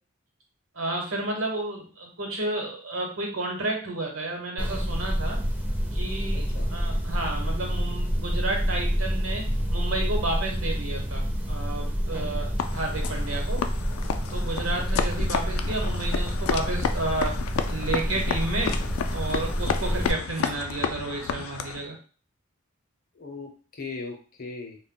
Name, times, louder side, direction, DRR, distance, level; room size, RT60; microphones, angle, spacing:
voice 1, 0.7-5.4 5.9-13.6 14.1-17.3 17.6-18.8 19.1-22.0, right 2 dB, 90° right, 0 dB, 0.9 m, -31 dB
sound 1, 4.6-20.1, equal, 10° right, 0.4 m, -28 dB
sound 2, 6.2-11.3, right 2 dB, 65° right, 0.6 m, -46 dB
voice 2, 6.3-6.7 14.9-15.0 23.2-24.8, left 4 dB, 45° left, 3 dB, 0.6 m, -38 dB
sound 3, 12.6-21.9, left 7 dB, 85° left, 0.3 m, -32 dB
2.1 x 2.1 x 3.7 m, 0.39 s
head